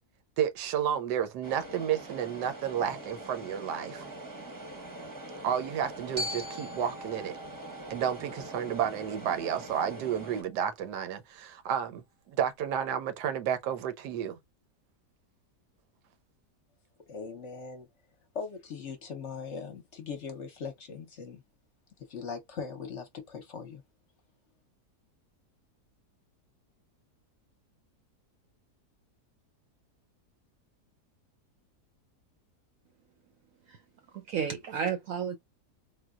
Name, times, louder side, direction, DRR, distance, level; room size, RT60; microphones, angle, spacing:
voice 1, 0.4-4.1 5.4-7.3 7.9-14.4, right 9 dB, 90° right, 1.3 m, -31 dB
sound 1, 1.4-10.4, right 1 dB, 15° right, 0.7 m, -44 dB
Glockenspiel, 6.2-10.3, left 1 dB, 40° right, 0.3 m, -42 dB
voice 2, 17.1-17.9 18.3-21.4 22.1-23.8, left 5 dB, 55° left, 0.9 m, -40 dB
voice 3, 34.3-35.4, right 7 dB, 65° right, 0.9 m, -32 dB
3.8 x 2.2 x 2.3 m
omnidirectional pair, 1.7 m